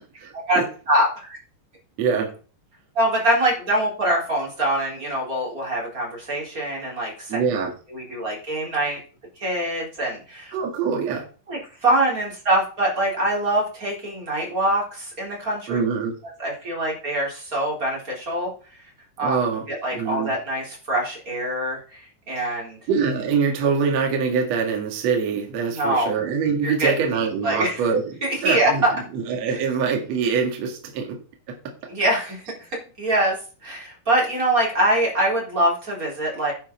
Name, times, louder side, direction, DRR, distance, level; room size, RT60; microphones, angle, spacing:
voice 1, 0.9-1.4 2.9-7.4 7.9-9.0 9.4-10.5 11.5-15.8 16.4-18.5 19.2-19.4 19.7-22.8 25.7-26.1 26.6-26.9 27.4-27.8 28.2-28.9 29.5-29.6 31.9-32.4 33.0-33.4 33.6-36.5, right 1 dB, 20° right, 3.8 m, -24 dB
voice 2, 2.0-2.3 7.3-7.7 10.5-11.3 15.7-16.1 19.2-19.7 19.9-20.3 22.4-22.6 22.9-28.1 28.4-31.2 31.5-31.6, right 6 dB, 50° right, 2.3 m, -24 dB
10.0 x 7.5 x 4.4 m
omnidirectional pair, 5.2 m